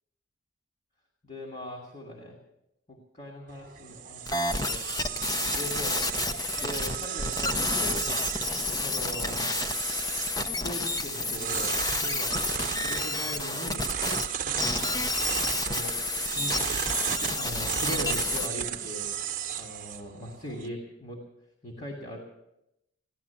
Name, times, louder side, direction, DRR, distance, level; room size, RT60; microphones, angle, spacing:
voice 1, 1.2-2.4 2.9-4.2 4.6-4.9 5.5-8.3 8.8-9.4 10.4-12.3 12.8-13.9 14.4-14.6 15.6-16.0 16.3-16.5 17.1-19.1 19.6-21.2 21.6-22.2, equal, 35° left, 0 dB, 2.6 m, -40 dB
sound 1, 3.5-20.7, right 9 dB, 45° right, 1.0 m, -34 dB
sound 2, 4.3-14.3 14.6-18.5, left 3 dB, 20° left, 0.7 m, -30 dB
17.0 x 11.5 x 7.2 m, 0.84 s
head